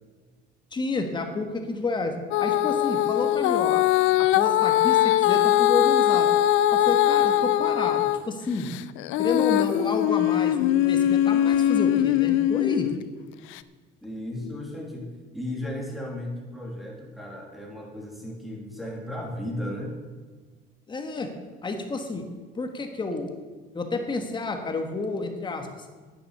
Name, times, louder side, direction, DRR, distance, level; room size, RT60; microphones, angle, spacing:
voice 1, 0.7-2.1 2.4-3.8 4.2-6.3 6.7-8.7 9.2-12.9 20.9-21.3 21.6-22.3 22.6-23.3 23.7-25.7, left 3 dB, 25° left, 5 dB, 1.5 m, -30 dB
Female singing, 2.3-8.2 8.7-13.0 13.6-13.7, left 12 dB, 80° left, 0.5 m, -21 dB
voice 2, 14.0-20.0, left 1 dB, ahead, -2 dB, 3.0 m, -35 dB
10.5 x 10.0 x 6.7 m, 1.4 s
cardioid pair, 140°, 20 cm